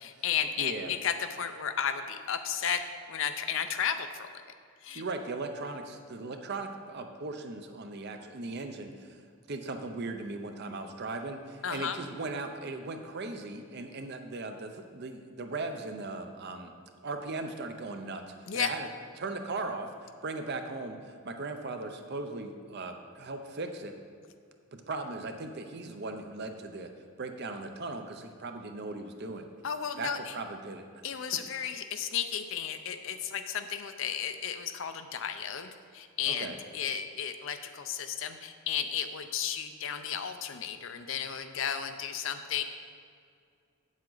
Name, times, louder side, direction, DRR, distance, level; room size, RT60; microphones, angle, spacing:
voice 1, 0.0-4.3 4.8-5.0 11.6-12.0 18.5-18.7 29.6-30.3 31.0-42.6, left 8 dB, 60° left, 8 dB, 0.5 m, -33 dB
voice 2, 0.6-0.9 4.9-9.2 9.5-16.7 17.0-18.2 18.5-18.9 19.2-23.9 24.7-26.9 27.2-29.5 30.0-30.8 36.3-36.5, right 3 dB, 50° right, 6 dB, 0.6 m, -38 dB
8.6 x 7.4 x 3.9 m, 2.2 s
head